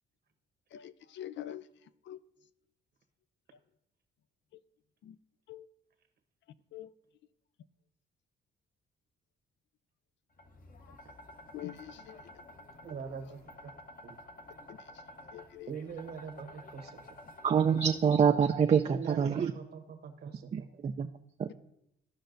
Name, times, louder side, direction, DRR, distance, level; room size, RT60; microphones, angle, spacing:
voice 1, 0.7-1.6 2.1-2.2 5.0-5.2 5.5-5.7 6.7-6.9 11.5-12.2 14.7-14.9 15.3-15.7, left 12 dB, 65° left, 0.4 m, -44 dB
sound 1, 10.4-18.2, left 2 dB, 45° left, 0.9 m, -51 dB
voice 2, 12.8-13.5 14.0-14.2 15.7-17.0 18.9-20.7, right 6 dB, 55° right, 1.1 m, -42 dB
voice 3, 17.4-19.5 20.5-21.1 21.4-21.5, right 7 dB, 35° right, 0.4 m, -26 dB
14.5 x 5.5 x 2.6 m
cardioid pair, 90°, 20 cm